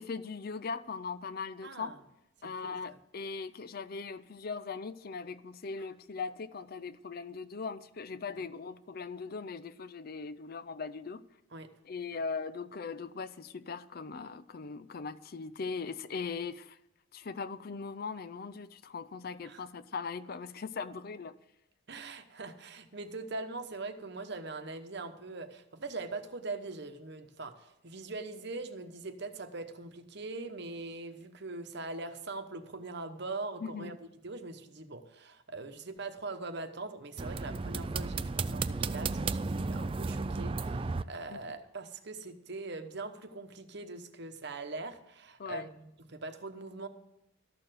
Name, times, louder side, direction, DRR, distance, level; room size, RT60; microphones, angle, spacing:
voice 1, 0.0-1.9 2.4-11.2 11.9-16.8 17.1-21.3 33.6-34.0 41.3-41.4 45.4-45.7, left 5 dB, 45° left, 0.5 m, -39 dB
voice 2, 1.6-2.0 2.6-2.8 8.3-8.4 11.5-11.7 12.1-12.2 19.4-19.6 21.9-46.9, right 3 dB, 55° right, 1.0 m, -42 dB
sound 1, 37.2-41.0, right 4 dB, 25° right, 0.3 m, -33 dB
13.5 x 6.8 x 7.6 m
head